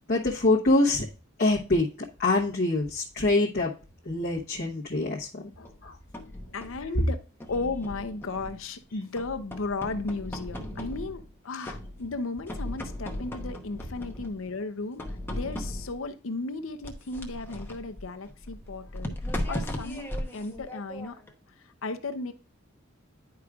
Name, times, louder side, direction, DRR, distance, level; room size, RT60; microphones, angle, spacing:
voice 1, 0.1-1.1 1.4-1.9 2.2-3.7 4.0-5.5 5.8-5.9, left 2 dB, 50° left, -4 dB, 1.0 m, -24 dB
sound 1, 5.7-6.9 7.4-8.8 9.2-11.3 11.6-12.2 12.5-14.4 15.0-16.1 16.8-21.3, left 1 dB, 10° left, 0.9 m, -37 dB
voice 2, 6.5-7.2 7.5-19.2 19.5-21.2 21.8-22.3, left 3 dB, 75° left, 8 dB, 0.7 m, -35 dB
10.0 x 4.8 x 2.4 m, 0.35 s
head